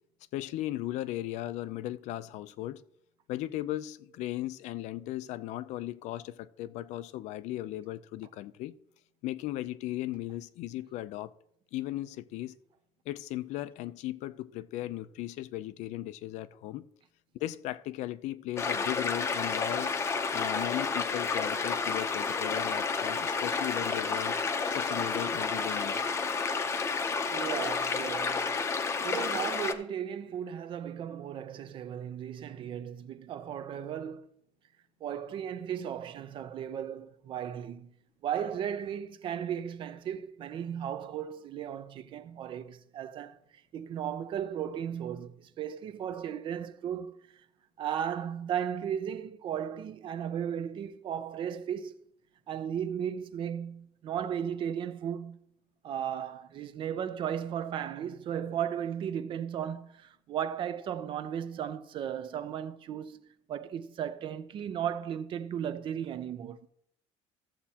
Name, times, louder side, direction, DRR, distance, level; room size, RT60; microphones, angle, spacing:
voice 1, 0.3-2.8 3.3-8.8 9.2-11.3 11.7-12.6 13.1-16.9 17.3-19.9 20.3-24.4 24.7-26.1, left 15 dB, 70° left, 0.5 m, -37 dB
sound 1, 18.6-29.7, left 4 dB, 20° left, 0.7 m, -31 dB
voice 2, 27.3-28.5 29.0-34.3 35.0-37.9 38.2-47.2 47.8-52.0 52.5-55.4 55.8-66.7, right 9 dB, 45° right, 0.6 m, -35 dB
15.0 x 7.3 x 2.8 m
cardioid pair, 165°, 12 cm